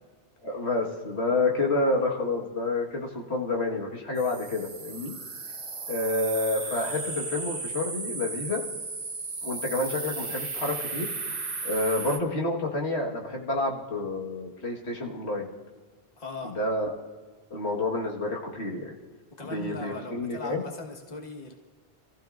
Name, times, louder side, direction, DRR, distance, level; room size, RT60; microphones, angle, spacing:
voice 1, 0.4-5.2 5.9-8.6 9.4-15.5 16.4-17.0 17.5-18.9 19.4-20.6, left 2 dB, 85° left, -1 dB, 2.0 m, -29 dB
sound 1, 4.2-12.2, right 4 dB, 60° right, 1.3 m, -35 dB
voice 2, 16.2-16.5 19.4-21.5, left 3 dB, 40° left, 1 dB, 1.6 m, -39 dB
27.5 x 15.0 x 2.6 m, 1.4 s
omnidirectional pair, 1.1 m